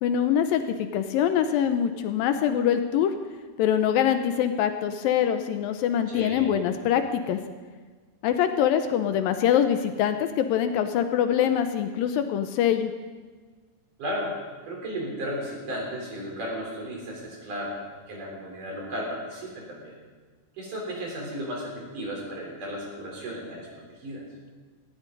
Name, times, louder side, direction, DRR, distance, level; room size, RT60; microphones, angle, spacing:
voice 1, 0.0-3.1 3.6-7.4 8.2-12.9, left 9 dB, 80° left, 8 dB, 2.2 m, -24 dB
voice 2, 6.1-6.5 14.0-14.3 14.6-17.8 18.1-19.9 20.6-23.7 24.0-24.2, equal, 50° right, -2 dB, 5.2 m, -34 dB
18.0 x 16.5 x 4.0 m, 1.4 s
omnidirectional pair, 4.7 m